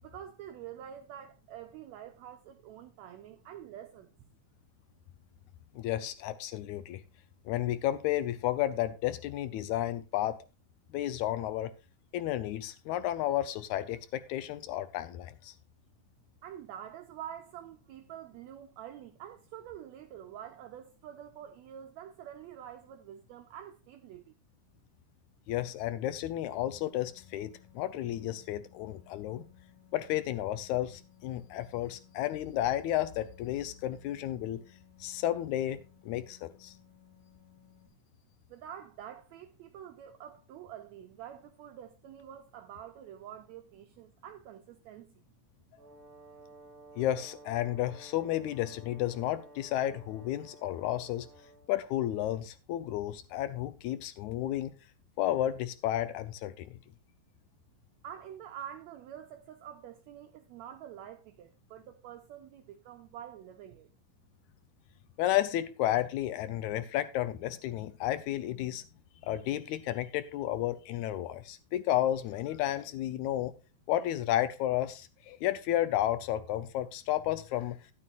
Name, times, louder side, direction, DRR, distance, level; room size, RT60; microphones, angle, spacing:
voice 1, 0.0-4.2 16.4-24.3 38.5-45.1 58.0-63.9, right 10 dB, 85° right, 1.6 m, -47 dB
voice 2, 5.8-7.0 7.5-10.4 10.9-11.7 12.1-15.5 25.5-29.5 29.9-34.6 35.0-36.7 47.0-51.3 51.7-54.7 55.2-56.8 65.2-68.8 69.2-73.5 73.9-77.8, left 13 dB, 75° left, 1.8 m, -32 dB
sound 1, 26.4-37.9, left 11 dB, 55° left, 4.1 m, -61 dB
Brass instrument, 45.8-51.8, right 1 dB, 35° right, 3.1 m, -54 dB
13.0 x 9.9 x 2.5 m
omnidirectional pair, 3.9 m